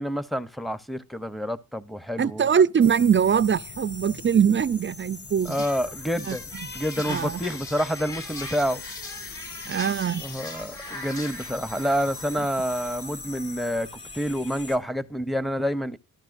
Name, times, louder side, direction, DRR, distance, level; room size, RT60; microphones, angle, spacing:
voice 1, 0.0-2.5 5.4-6.4 6.7-8.8 10.2-13.9 14.1-16.0, equal, ahead, 0.7 m, -28 dB
voice 2, 2.2-5.6 6.2-6.7 7.1-7.4 9.7-10.2, right 7 dB, 30° right, 0.4 m, -22 dB
sound 1, 2.8-14.8, left 3 dB, 35° left, 2.2 m, -41 dB
sound 2, 5.4-11.3, left 2 dB, 55° left, 2.8 m, -41 dB
sound 3, 7.1-13.0, left 3 dB, 75° left, 8.0 m, -44 dB
13.5 x 11.5 x 2.5 m
cardioid pair, 60°, 38 cm